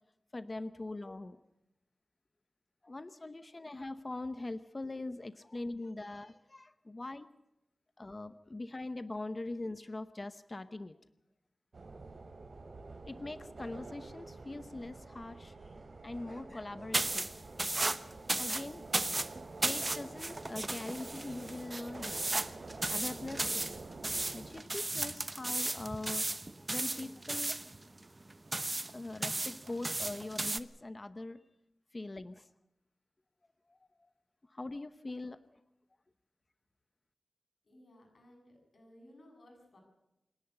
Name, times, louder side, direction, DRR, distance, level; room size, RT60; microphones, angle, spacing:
voice 1, 0.3-1.4 2.8-7.3 8.0-11.0 13.0-15.6 16.0-17.3 18.4-18.8 19.6-22.2 22.5-23.7 24.3-26.2 26.6-27.6 28.9-31.4 31.9-32.5 33.7-34.1 34.5-35.4, left 2 dB, 35° left, 12 dB, 0.8 m, -42 dB
sound 1, 11.7-24.6, right 3 dB, 65° right, 2.8 m, -48 dB
sound 2, 16.9-30.6, right 2 dB, 30° right, 0.9 m, -35 dB
voice 2, 37.6-39.8, left 1 dB, 65° left, 2 dB, 7.6 m, -59 dB
27.0 x 11.0 x 9.8 m, 0.90 s
wide cardioid pair, 85°, 0 cm